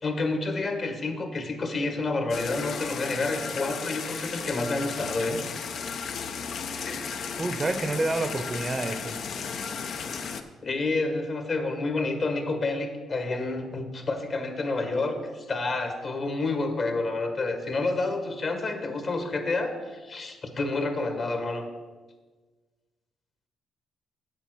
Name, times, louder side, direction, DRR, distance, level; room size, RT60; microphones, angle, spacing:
voice 1, 0.0-5.4 6.9-7.1 10.6-21.6, left 3 dB, 45° left, 6 dB, 1.6 m, -29 dB
sound 1, 2.3-10.4, left 6 dB, 65° left, 0.7 m, -35 dB
voice 2, 7.4-9.2, right 2 dB, 25° right, 9 dB, 0.7 m, -28 dB
8.1 x 7.3 x 6.2 m, 1.3 s
cardioid pair, 90°, 0 cm